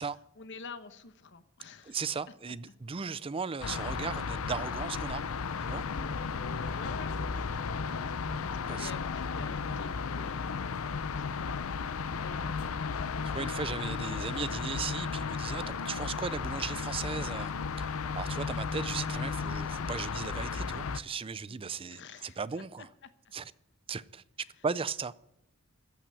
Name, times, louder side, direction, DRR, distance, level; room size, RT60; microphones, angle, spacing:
voice 1, 0.4-2.0 6.0-6.2 6.8-8.0 8.4-11.9 12.2-12.8 21.5-23.1, left 4 dB, 60° left, 1.0 m, -48 dB
voice 2, 1.8-5.2 5.6-5.8 8.7-8.9 13.3-17.5 17.8-22.9 23.3-23.5 23.9-24.2 24.6-25.1, right 5 dB, 25° right, 0.4 m, -37 dB
sound 1, 3.6-21.0, left 5 dB, 75° left, 0.6 m, -34 dB
15.0 x 6.1 x 8.5 m
head